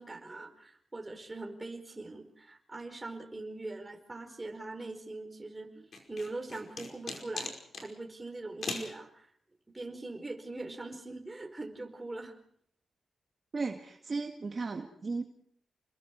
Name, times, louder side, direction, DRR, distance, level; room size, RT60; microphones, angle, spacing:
voice 1, 0.0-9.3 9.7-12.3, right 2 dB, 20° right, 4 dB, 4.8 m, -42 dB
sound 1, 5.9-7.9 8.6-8.9, left 3 dB, 55° left, 5.2 m, -39 dB
voice 2, 13.5-15.2, right 4 dB, 35° right, 3 dB, 2.0 m, -35 dB
29.5 x 21.5 x 4.8 m, 0.67 s
wide cardioid pair, 120°, 0 cm